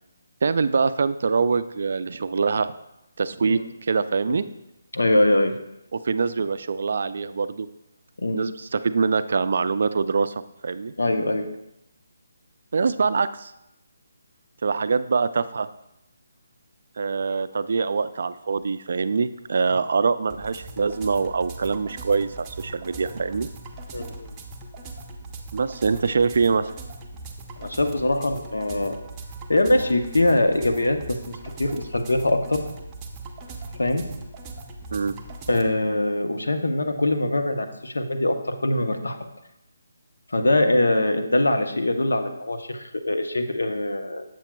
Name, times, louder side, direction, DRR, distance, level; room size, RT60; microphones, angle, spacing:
voice 1, 0.4-2.7 3.2-4.4 5.9-7.7 8.3-10.3 10.6-10.9 12.7-13.5 14.6-15.7 17.0-23.5 25.5-26.7 34.9-35.1, right 5 dB, 60° right, 13 dB, 0.3 m, -24 dB
voice 2, 4.9-5.5 8.2-8.4 11.0-11.5 23.9-24.3 27.6-29.0 29.5-32.6 33.8-34.0 35.5-39.2 40.3-44.2, left 1 dB, 90° left, 6 dB, 0.7 m, -23 dB
sound 1, 20.3-35.7, right 2 dB, 15° right, 0.6 m, -39 dB
7.4 x 7.1 x 2.2 m, 0.84 s
figure-of-eight pair, 160°, 0 cm